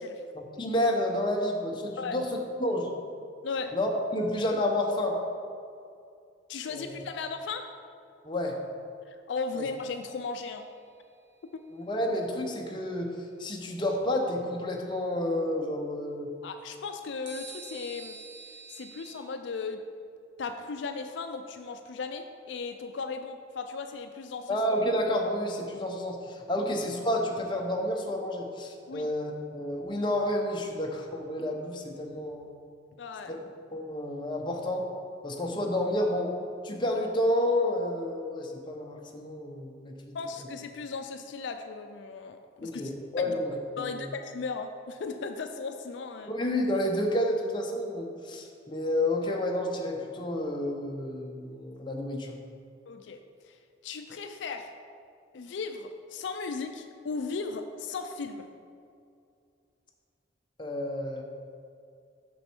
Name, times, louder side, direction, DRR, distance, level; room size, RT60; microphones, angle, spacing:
voice 1, 0.4-2.9 3.7-5.2 6.7-6.9 8.2-8.6 9.5-9.7 11.7-16.3 24.5-32.5 33.3-33.4 33.7-34.9 35.2-36.4 36.6-40.2 42.6-44.1 46.3-52.4 60.6-61.2, left 1 dB, 25° left, 0 dB, 0.7 m, -30 dB
voice 2, 3.4-3.8 6.5-7.7 9.1-10.7 11.5-11.7 16.4-18.2 18.7-19.9 20.4-24.6 28.9-29.1 33.0-33.4 40.1-42.9 43.3-43.4 43.8-46.3 52.9-54.7 55.3-58.5, left 4 dB, 70° left, 6 dB, 0.4 m, -37 dB
sound 1, 9.6-10.9 17.3-19.1, right 5 dB, 70° right, 1.6 m, -47 dB
6.6 x 6.2 x 4.4 m, 2.4 s
head